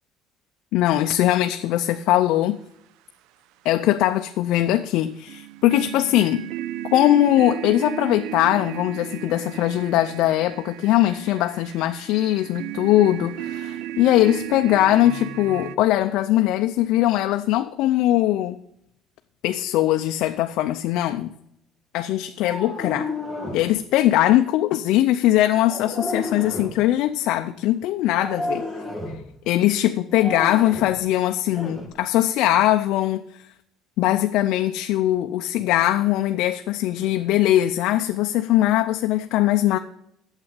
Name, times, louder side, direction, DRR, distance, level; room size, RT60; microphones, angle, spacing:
voice 1, 0.7-2.6 3.6-6.5 6.9-18.6 19.4-21.3 21.9-23.1 23.5-28.6 29.5-33.4 34.0-39.8, left 14 dB, 65° left, 0.5 m, -21 dB
sound 1, 5.3-15.8, right 13 dB, 70° right, 0.5 m, -34 dB
sound 2, 22.4-23.7 25.6-26.8 28.1-29.2 30.1-31.0 31.5-31.9, left 2 dB, 15° right, 1.9 m, -31 dB
8.9 x 7.5 x 7.8 m
cardioid pair, 165°, 0 cm